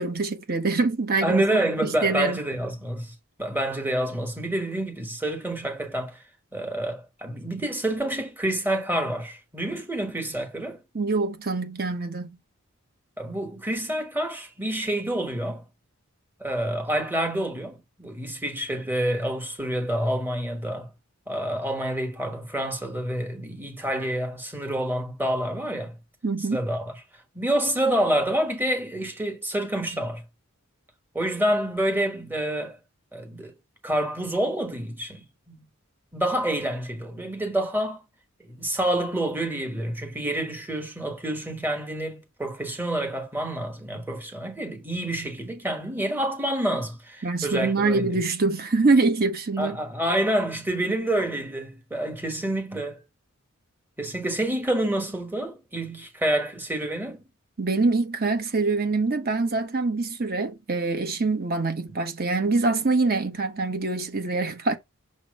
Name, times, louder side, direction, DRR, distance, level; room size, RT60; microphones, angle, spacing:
voice 1, 0.0-2.4 10.9-12.3 26.2-26.6 47.2-49.8 57.6-64.8, right 3 dB, 45° right, 1.1 m, -24 dB
voice 2, 1.2-6.2 6.5-10.8 13.2-15.6 16.4-20.9 21.3-26.0 26.5-26.9 27.3-30.2 31.1-32.8 33.1-33.5 33.8-35.7 36.1-38.0 38.4-48.1 49.6-53.0 54.0-57.2, right 1 dB, 10° right, 1.3 m, -28 dB
6.5 x 3.0 x 5.2 m
head